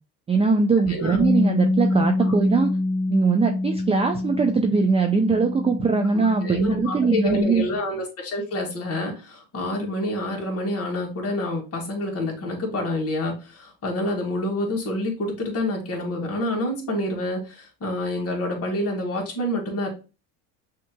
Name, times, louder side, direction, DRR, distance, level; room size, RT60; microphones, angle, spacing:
voice 1, 0.3-2.7 3.1-7.6, right 4 dB, 15° right, 5 dB, 0.4 m, -21 dB
Bass guitar, 1.2-7.4, left 2 dB, 10° left, 2.1 m, -25 dB
voice 2, 6.1-19.9, left 1 dB, 35° left, -1 dB, 2.0 m, -28 dB
6.2 x 2.9 x 2.2 m, 0.32 s
supercardioid pair, 115°, 44 cm